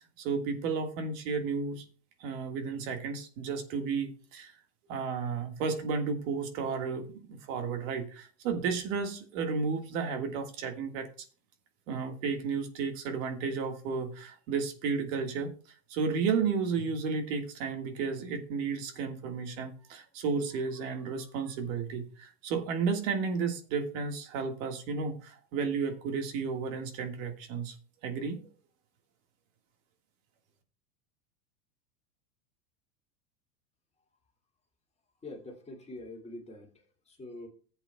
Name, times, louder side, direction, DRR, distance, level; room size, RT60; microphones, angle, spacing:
voice 1, 0.2-1.8 2.2-4.5 4.9-11.1 11.9-15.5 15.9-27.7 28.0-28.4, right 5 dB, 60° right, 6 dB, 1.8 m, -33 dB
voice 2, 35.2-36.7 37.1-37.5, left 2 dB, 15° left, 0 dB, 2.2 m, -44 dB
15.0 x 8.1 x 2.2 m, 0.39 s
supercardioid pair, 140°, 45 cm